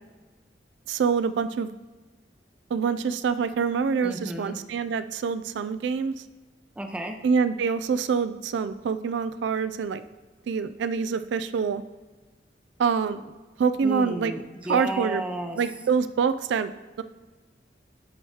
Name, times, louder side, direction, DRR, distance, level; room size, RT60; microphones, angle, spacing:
voice 1, 0.9-1.7 2.7-6.2 7.2-10.0 10.5-11.8 12.8-13.3 13.6-14.3 14.7-15.2 15.6-16.7 17.0-17.1, right 6 dB, 75° right, 12 dB, 0.3 m, -25 dB
voice 2, 4.0-4.5 6.8-7.2 13.8-15.6, right 1 dB, 5° right, 3 dB, 0.6 m, -32 dB
12.5 x 4.7 x 2.8 m, 1.2 s
head